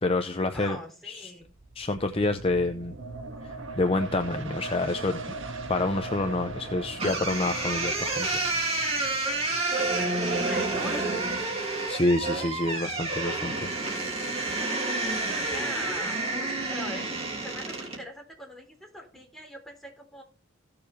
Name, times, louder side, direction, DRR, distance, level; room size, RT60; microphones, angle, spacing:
voice 1, 0.0-0.8 1.0-1.3 1.7-2.9 3.4-5.2 5.7-8.3 11.9-13.5, left 2 dB, 25° left, 7 dB, 0.6 m, -27 dB
voice 2, 0.5-1.5 9.2-9.3 9.7-11.3 14.5-20.2, equal, ahead, 0 dB, 3.4 m, -42 dB
sound 1, 1.4-14.7 15.1-15.2, right 3 dB, 60° right, 1.8 m, -41 dB
sound 2, 7.0-18.0, right 2 dB, 30° right, 3.1 m, -29 dB
16.0 x 6.9 x 3.3 m, 0.37 s
head